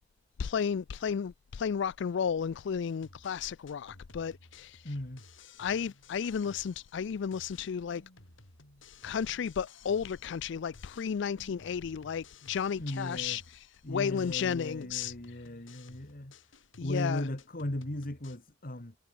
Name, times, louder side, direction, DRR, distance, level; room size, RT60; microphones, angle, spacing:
voice 1, 0.4-4.9 5.6-8.0 9.0-15.4 16.8-17.3, left 7 dB, 65° left, 0.4 m, -33 dB
sound 1, 2.9-7.1 7.3-10.5 10.7-13.9 14.2-18.4, left 3 dB, 85° left, 6.9 m, -56 dB
voice 2, 4.8-5.2 12.8-13.4 13.8-16.3 16.8-19.0, left 1 dB, 50° left, 2.1 m, -37 dB
head